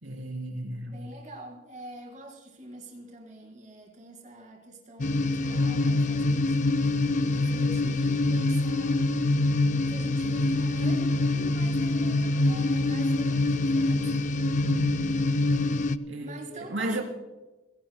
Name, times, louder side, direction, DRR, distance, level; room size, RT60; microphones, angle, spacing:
voice 1, 0.0-1.1 14.6-15.2 16.1-17.0, right 1 dB, 75° right, 3.5 m, -34 dB
voice 2, 0.9-9.0 9.9-14.4 16.2-17.0, right 1 dB, 40° right, 4.5 m, -46 dB
sound 1, 5.0-16.0, left 2 dB, 40° left, 0.5 m, -25 dB
29.5 x 16.5 x 2.2 m
head